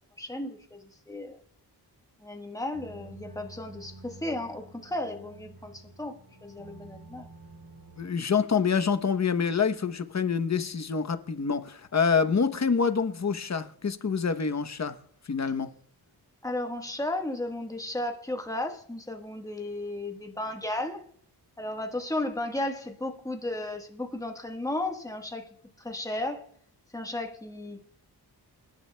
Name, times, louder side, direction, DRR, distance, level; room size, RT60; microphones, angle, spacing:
voice 1, 0.2-1.4 2.2-7.3 16.4-21.0 21.6-25.5 25.8-26.5 26.9-27.8, left 1 dB, 10° left, 1.3 m, -34 dB
sound 1, 2.7-8.1, right 2 dB, 60° right, 3.5 m, -49 dB
voice 2, 8.0-15.0 15.2-15.7, left 6 dB, 40° left, 0.9 m, -26 dB
28.5 x 10.5 x 2.2 m
wide cardioid pair, 95°, 40 cm